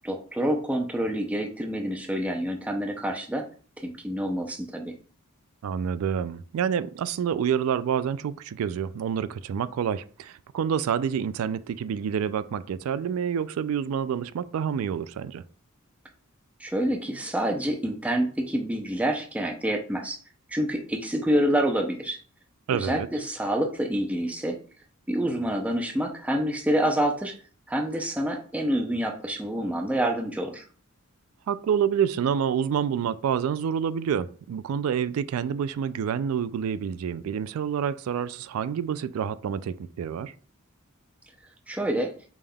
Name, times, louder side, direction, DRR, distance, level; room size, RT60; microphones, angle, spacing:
voice 1, 0.0-3.5 3.8-4.9 16.6-20.2 20.5-22.2 22.7-24.6 25.1-27.3 27.7-30.6 41.7-42.1, right 1 dB, 5° right, 0.5 m, -27 dB
voice 2, 5.6-15.4 22.7-23.1 31.5-40.3, right 8 dB, 75° right, 0.3 m, -28 dB
5.2 x 3.4 x 2.2 m
head